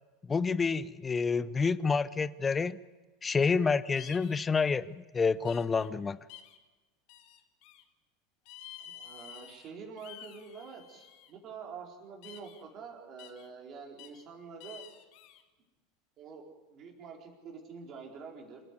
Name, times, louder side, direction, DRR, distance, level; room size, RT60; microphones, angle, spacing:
voice 1, 0.3-2.8 3.2-6.2, left 5 dB, 20° left, 17 dB, 0.7 m, -28 dB
sound 1, 4.0-4.5 5.4-5.9 6.3-6.6 7.1-7.8 8.5-9.7 10.0-11.3 12.2-12.6 13.2-13.5 14.0-14.2 14.6-15.4, left 10 dB, 55° left, 1.9 m, -50 dB
voice 2, 8.8-14.9 16.2-18.6, right 5 dB, 40° right, 0 dB, 4.3 m, -47 dB
28.0 x 9.6 x 9.6 m, 1.2 s
figure-of-eight pair, 80°, 0 cm